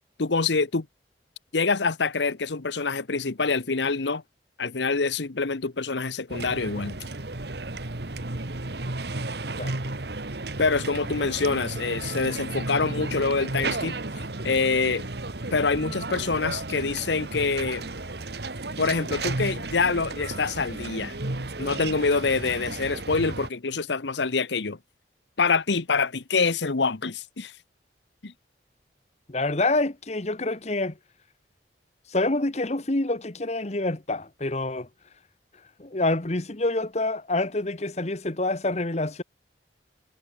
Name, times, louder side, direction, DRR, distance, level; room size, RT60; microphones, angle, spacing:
voice 1, 0.2-0.9 1.5-4.2 4.6-7.0 10.6-14.0 14.4-15.0 15.5-17.9 18.8-21.2 21.6-24.8 25.4-27.5 28.2-28.3, left 4 dB, 75° left, 1.0 m, -25 dB
sound 1, 6.3-23.5, right 2 dB, 65° right, 1.8 m, -33 dB
voice 2, 29.3-31.0 32.1-34.9 35.8-39.2, left 2 dB, 40° left, 1.3 m, -27 dB
head